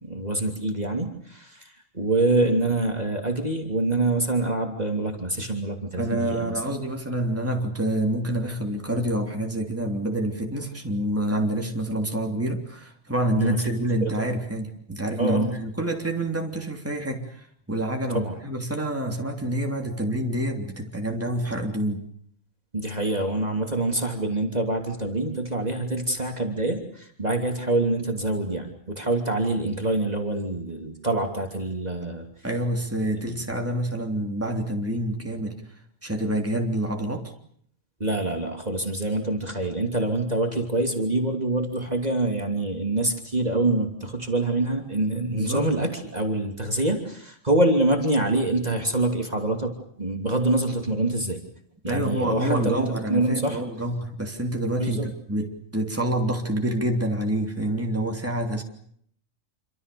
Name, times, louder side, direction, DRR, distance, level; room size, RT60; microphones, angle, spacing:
voice 1, 0.0-6.6 13.4-13.7 14.0-14.3 15.2-15.5 18.1-18.3 22.7-28.7 28.9-32.3 33.2-33.4 38.0-49.7 50.0-51.4 51.8-53.6 54.8-55.1, right 2 dB, 30° right, 3 dB, 3.2 m, -25 dB
voice 2, 6.0-22.0 32.4-35.6 36.0-37.3 45.3-45.7 51.8-58.6, right 1 dB, 10° right, 2 dB, 3.3 m, -27 dB
27.5 x 25.5 x 7.0 m, 0.66 s
omnidirectional pair, 1.4 m